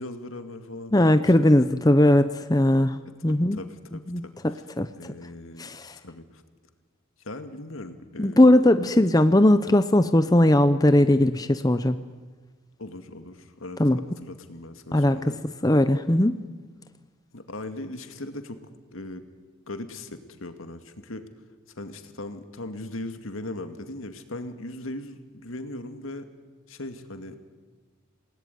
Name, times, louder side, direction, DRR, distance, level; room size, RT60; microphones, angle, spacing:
voice 1, 0.0-1.5 3.3-4.6 5.0-5.8 6.0-6.4 7.2-8.5 9.0-9.1 12.8-13.8 14.1-15.4 17.3-18.6 18.9-19.2 19.7-21.3 21.8-26.3 26.7-27.4, left 2 dB, 75° left, 8 dB, 2.2 m, -39 dB
voice 2, 0.9-3.6 4.1-4.9 5.6-5.9 8.2-12.0 13.8-14.0 14.9-15.2 15.6-16.4, left 1 dB, 20° left, 10 dB, 0.7 m, -19 dB
28.0 x 19.0 x 9.4 m, 1.4 s
head